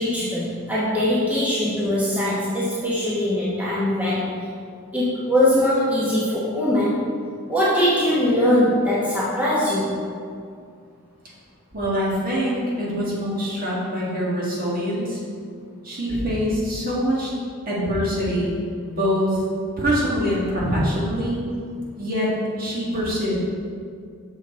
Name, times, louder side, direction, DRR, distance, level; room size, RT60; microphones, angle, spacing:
voice 1, 0.0-4.5 4.9-7.1 7.5-9.9, left 1 dB, 5° right, -8 dB, 1.0 m, -21 dB
voice 2, 11.7-15.2 15.8-17.3 17.7-18.6 18.9-19.4 19.8-21.4 22.0-23.3, equal, 40° right, -6 dB, 1.7 m, -24 dB
6.4 x 6.4 x 4.3 m, 2.2 s
head